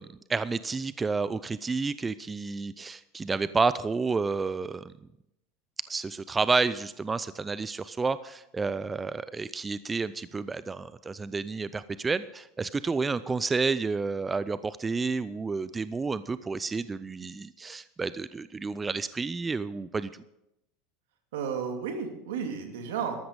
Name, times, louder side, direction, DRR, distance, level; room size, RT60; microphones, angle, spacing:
voice 1, 0.0-4.9 5.9-20.1, right 4 dB, 20° right, 15 dB, 0.5 m, -30 dB
voice 2, 21.3-23.2, right 6 dB, 80° right, 5 dB, 2.5 m, -32 dB
13.5 x 12.5 x 5.2 m, 0.84 s
hypercardioid pair, 105°, 0 cm